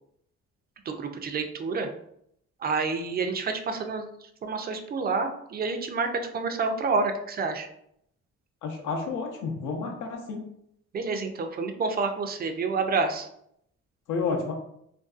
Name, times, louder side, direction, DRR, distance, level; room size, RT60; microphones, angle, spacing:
voice 1, 0.9-1.9 2.6-7.7 10.9-13.3, right 4 dB, 30° right, 6 dB, 0.4 m, -29 dB
voice 2, 8.6-10.5 14.1-14.5, left 4 dB, 80° left, 2 dB, 0.7 m, -30 dB
2.5 x 2.2 x 2.3 m, 0.72 s
cardioid pair, 90°, 30 cm